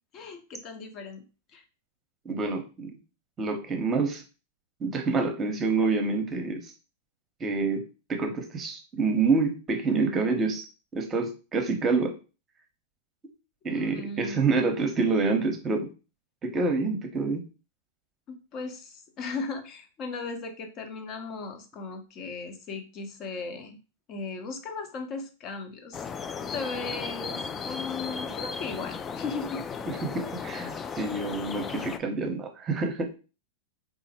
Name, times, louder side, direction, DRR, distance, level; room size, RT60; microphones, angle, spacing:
voice 1, 0.1-1.2 1.5-1.6 13.7-14.5 18.5-23.8 24.1-26.0 26.4-29.6 30.5-30.6, left 4 dB, 35° left, 5 dB, 0.8 m, -37 dB
voice 2, 2.2-3.0 3.4-4.2 4.8-6.7 7.4-10.7 10.9-12.1 13.6-15.9 16.4-17.4 29.9-33.1, right 4 dB, 25° right, 5 dB, 0.8 m, -27 dB
sound 1, 25.9-32.0, left 5 dB, 20° left, 0.3 m, -35 dB
3.7 x 2.0 x 4.1 m, 0.32 s
hypercardioid pair, 125°, 0 cm